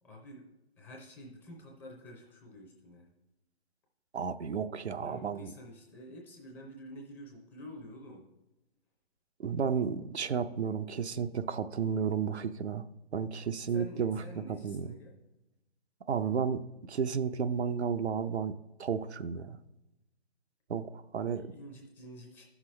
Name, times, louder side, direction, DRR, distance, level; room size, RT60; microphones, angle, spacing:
voice 1, 0.0-0.5 0.8-3.1 5.0-8.3 13.7-15.2 21.3-22.4, equal, 5° left, -1 dB, 0.5 m, -49 dB
voice 2, 4.1-5.5 9.4-14.9 16.1-16.6 16.9-18.5 18.8-19.6 20.7-21.4, right 6 dB, 90° right, 10 dB, 0.6 m, -32 dB
12.5 x 5.9 x 3.2 m, 0.97 s
hypercardioid pair, 145°, 32 cm